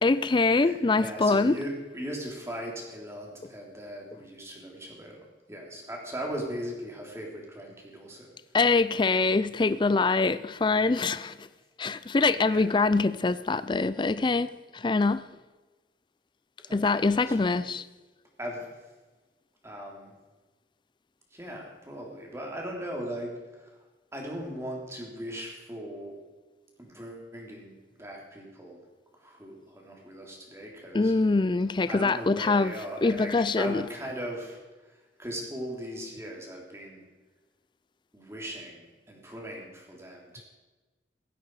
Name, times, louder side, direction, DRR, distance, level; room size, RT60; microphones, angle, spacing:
voice 1, 0.0-1.6 8.5-11.5 11.8-15.3 16.7-17.8 30.9-32.7 33.0-33.8, left 3 dB, 25° left, 0.4 m, -24 dB
voice 2, 0.6-5.2 5.5-8.3 12.3-12.7 16.6-17.7 18.4-18.8 19.6-20.1 21.3-23.7 24.1-26.2 26.8-27.7 28.0-28.8 29.2-31.1 31.9-34.6 34.9-37.0 38.1-40.4, equal, 15° right, 3.5 m, -39 dB
16.5 x 15.5 x 4.8 m
head